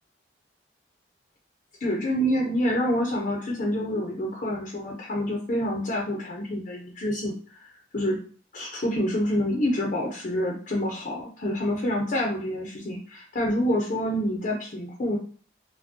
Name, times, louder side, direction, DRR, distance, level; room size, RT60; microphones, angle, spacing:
voice 1, 1.8-7.7 7.9-8.2 8.5-15.2, equal, 45° left, -1 dB, 0.6 m, -27 dB
4.3 x 2.1 x 2.9 m, 0.43 s
head